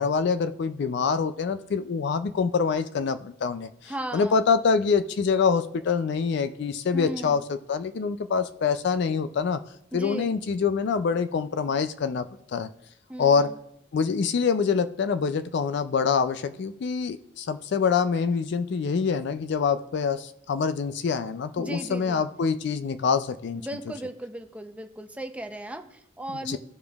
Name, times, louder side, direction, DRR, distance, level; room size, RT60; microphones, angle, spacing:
voice 1, 0.0-9.6 9.9-12.7 13.2-13.5 13.9-23.6 26.5-26.6, left 5 dB, 65° left, 11 dB, 0.4 m, -25 dB
voice 2, 3.9-4.5 6.9-7.4 9.9-10.4 13.1-13.5 21.6-22.2 23.5-26.6, right 1 dB, 5° right, 6 dB, 0.6 m, -36 dB
15.0 x 5.1 x 2.4 m, 0.75 s
head